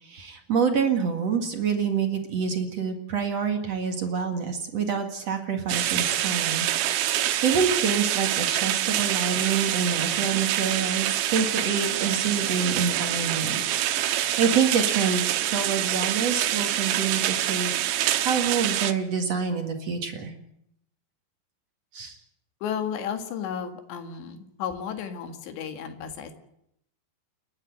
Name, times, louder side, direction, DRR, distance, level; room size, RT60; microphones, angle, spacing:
voice 1, 0.0-13.5 14.0-15.2 15.5-17.7 18.2-20.3 21.9-22.2, right 6 dB, 50° right, 4 dB, 2.3 m, -27 dB
sound 1, 5.7-18.9, right 12 dB, 85° right, 3.3 m, -26 dB
voice 2, 22.6-26.3, left 8 dB, 85° left, 7 dB, 4.1 m, -33 dB
29.5 x 10.5 x 9.3 m, 0.76 s
omnidirectional pair, 5.0 m